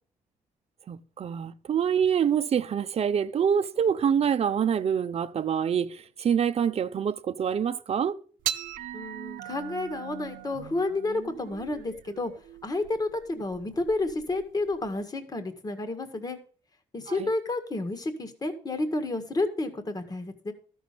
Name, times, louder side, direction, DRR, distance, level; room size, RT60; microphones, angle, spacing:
voice 1, 0.9-8.2 17.1-17.3, right 8 dB, 50° right, 0.7 m, -26 dB
sound 1, 8.4-15.0, right 12 dB, 85° right, 0.7 m, -39 dB
voice 2, 8.9-12.3 12.6-16.4 16.9-20.5, left 2 dB, 30° left, 1.8 m, -30 dB
13.0 x 6.3 x 6.7 m
cardioid pair, 100°, 14 cm